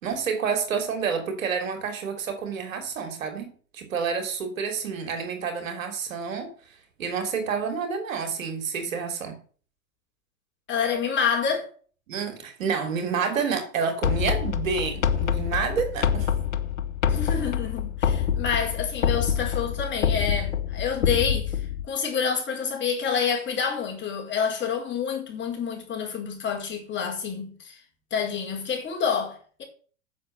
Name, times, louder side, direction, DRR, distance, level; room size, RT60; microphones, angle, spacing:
voice 1, 0.0-6.5 7.0-9.4 12.1-16.3, right 6 dB, 75° right, 3.3 m, -29 dB
voice 2, 10.7-11.7 17.1-21.6 21.9-27.8 28.1-29.6, left 6 dB, 25° left, 4.4 m, -28 dB
sound 1, 14.0-21.9, left 8 dB, 80° left, 1.0 m, -26 dB
8.5 x 7.1 x 8.2 m
hypercardioid pair, 95°, 40 cm